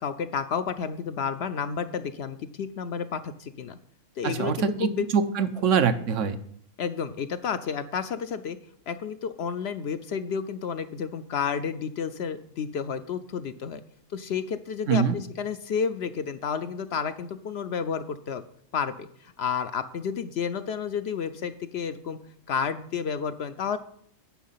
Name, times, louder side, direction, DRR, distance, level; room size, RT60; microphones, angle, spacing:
voice 1, 0.0-3.8 4.2-5.0 6.8-8.6 8.9-13.8 14.1-18.4 18.7-22.2 22.5-23.8, left 6 dB, 65° left, 10 dB, 0.7 m, -31 dB
voice 2, 4.2-6.4 14.9-15.1, right 7 dB, 75° right, 10 dB, 1.1 m, -24 dB
10.0 x 5.9 x 5.6 m, 0.66 s
omnidirectional pair, 1.3 m